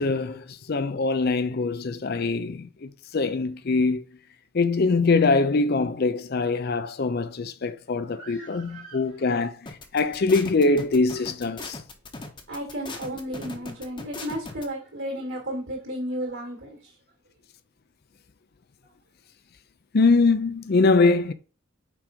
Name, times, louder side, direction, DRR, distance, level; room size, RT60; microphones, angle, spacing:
voice 1, 0.0-4.1 4.5-9.6 9.9-11.8 19.9-21.3, left 3 dB, 45° left, 0.5 m, -23 dB
voice 2, 8.2-9.0 12.5-16.9, equal, 65° right, 2.3 m, -34 dB
sound 1, 9.7-14.6, left 3 dB, 20° left, 0.9 m, -38 dB
6.2 x 4.8 x 5.1 m
head